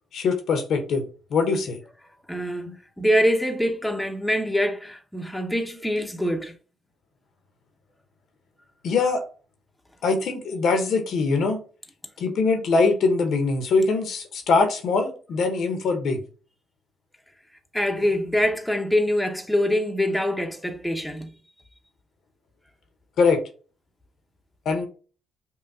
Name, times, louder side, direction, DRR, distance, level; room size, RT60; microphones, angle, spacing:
voice 1, 0.1-1.8 2.7-2.8 8.8-9.2 10.0-11.6 12.2-16.2 23.2-23.4 24.6-24.9, left 4 dB, 70° left, 0.8 m, -22 dB
voice 2, 2.3-6.5 17.7-21.3, equal, 5° left, 0.7 m, -24 dB
5.5 x 2.2 x 2.6 m
cardioid pair, 90°, 0 cm